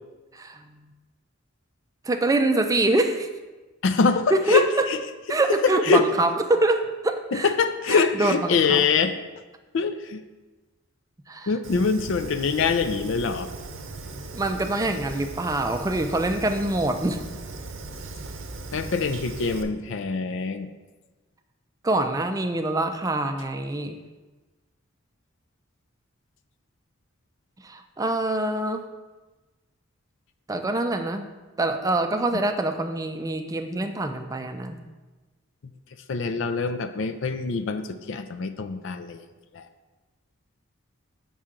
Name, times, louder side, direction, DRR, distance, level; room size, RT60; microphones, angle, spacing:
voice 1, 0.3-0.8 2.0-3.3 4.3-4.9 5.3-7.5 7.9-8.8 11.3-11.5 14.3-17.2 21.8-24.0 27.6-28.8 30.5-31.3 31.6-34.8, right 2 dB, 15° right, 7 dB, 0.4 m, -25 dB
voice 2, 3.8-5.0 5.6-6.1 7.4-9.2 9.7-10.2 11.5-13.5 18.7-20.7 32.3-32.4 36.1-39.2 39.5-39.7, left 5 dB, 65° left, 9 dB, 0.4 m, -24 dB
Fire, 11.6-19.6, right 3 dB, 75° right, 0.7 m, -38 dB
7.3 x 5.5 x 3.7 m, 1.2 s
head